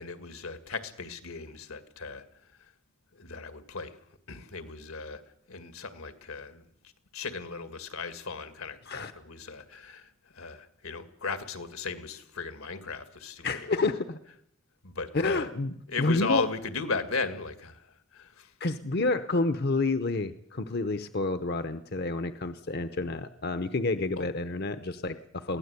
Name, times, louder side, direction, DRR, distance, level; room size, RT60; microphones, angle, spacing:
voice 1, 0.0-2.2 2.6-2.7 3.1-4.0 4.3-5.2 5.5-6.6 7.1-13.5 14.8-15.5 15.9-17.9 18.1-18.5 24.2-24.3, left 4 dB, 85° left, 10 dB, 2.1 m, -36 dB
voice 2, 13.4-14.2 15.1-16.4 18.6-25.6, left 3 dB, 50° left, 11 dB, 0.8 m, -29 dB
22.5 x 16.5 x 8.2 m, 0.72 s
head